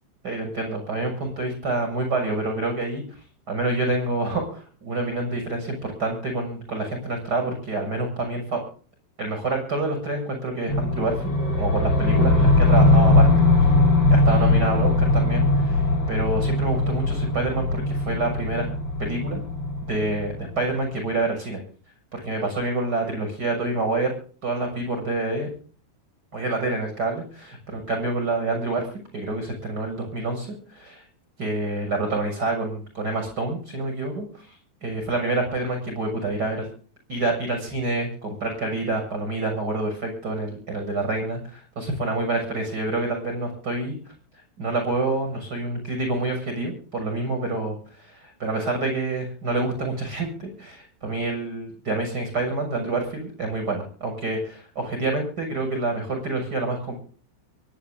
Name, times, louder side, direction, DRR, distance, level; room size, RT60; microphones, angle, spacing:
voice 1, 0.2-3.0 3.5-8.6 9.2-13.3 13.6-13.7 14.1-15.8 16.1-18.7 19.0-19.4 19.9-21.6 22.1-24.1 24.4-25.5 26.3-31.0 31.4-34.6 34.8-36.7 37.1-44.1 44.6-57.0, right 2 dB, 20° right, 3 dB, 7.1 m, -27 dB
sound 1, 10.7-20.7, left 2 dB, 25° left, 6.4 m, -20 dB
24.0 x 10.5 x 3.9 m, 0.42 s
omnidirectional pair, 5.2 m